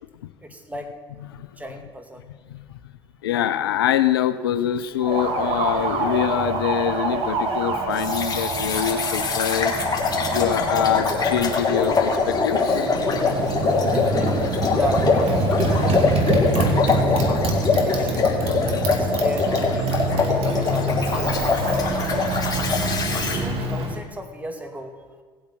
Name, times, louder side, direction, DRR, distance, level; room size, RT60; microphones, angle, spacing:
voice 1, 0.4-0.9 1.6-2.2 6.0-6.1 10.7-10.9 11.8-12.0 13.9-16.0 17.3-17.5 17.8-18.3 18.9-20.9 21.7-22.3 23.3-25.0, right 1 dB, 10° right, 4 dB, 2.2 m, -35 dB
voice 2, 3.2-12.9, left 10 dB, 75° left, 13 dB, 0.5 m, -24 dB
Motorcycle, 5.0-24.0, right 2 dB, 50° right, 2.1 m, -26 dB
sound 1, 8.0-23.4, left 4 dB, 30° left, 2.8 m, -23 dB
18.0 x 8.2 x 4.4 m, 1.5 s
figure-of-eight pair, 60°, 12 cm